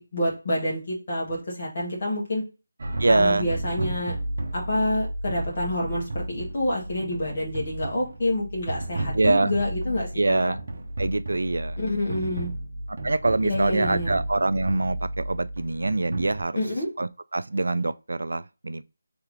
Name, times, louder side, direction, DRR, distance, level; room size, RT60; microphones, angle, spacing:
voice 1, 0.0-2.4 3.1-4.1 4.5-10.5 11.8-12.5 13.4-14.2 16.6-16.9, left 1 dB, 35° left, 1.7 m, -28 dB
sound 1, 2.8-16.4, right 1 dB, 45° right, 0.9 m, -33 dB
voice 2, 3.0-3.5 9.1-9.5 10.2-10.6 11.0-11.8 13.0-16.6 17.0-18.8, right 2 dB, 80° right, 0.3 m, -24 dB
3.6 x 3.4 x 3.4 m
figure-of-eight pair, 175°, 0 cm